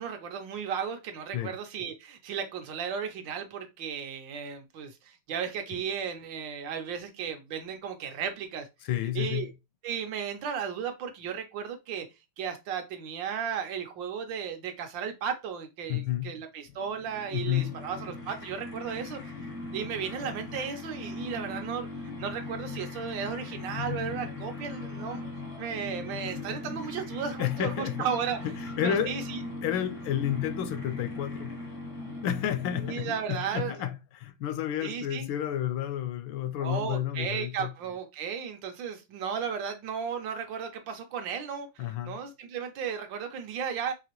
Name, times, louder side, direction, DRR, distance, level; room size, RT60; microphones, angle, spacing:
voice 1, 0.0-8.7 9.1-9.5 9.8-12.1 12.4-19.5 19.7-25.3 25.6-28.4 28.8-29.4 32.8-33.7 34.8-35.3 36.6-43.9, right 7 dB, 70° right, 1.4 m, -35 dB
voice 2, 8.8-9.5 15.9-16.4 17.3-17.8 27.4-28.1 28.4-29.2 29.6-31.6 32.2-37.7 41.8-42.2, left 11 dB, 80° left, 1.4 m, -31 dB
sound 1, 16.8-33.5, left 3 dB, 55° left, 0.3 m, -39 dB
4.9 x 2.9 x 2.9 m
omnidirectional pair, 2.2 m